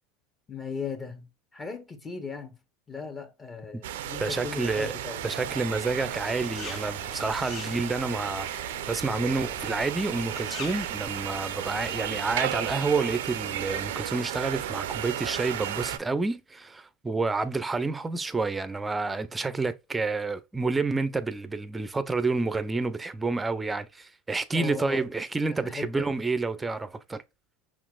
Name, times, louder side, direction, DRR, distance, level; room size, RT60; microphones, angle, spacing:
voice 1, 0.5-2.6 2.9-5.2 24.5-25.0 25.6-26.1, left 5 dB, 20° left, 1.1 m, -37 dB
sound 1, 3.8-16.0, right 11 dB, 80° right, 0.4 m, -34 dB
voice 2, 4.2-4.9 5.2-27.2, right 3 dB, 15° right, 0.5 m, -29 dB
sound 2, 5.2-12.2, left 5 dB, 50° left, 0.9 m, -45 dB
5.8 x 2.5 x 2.3 m
hypercardioid pair, 95°, 0 cm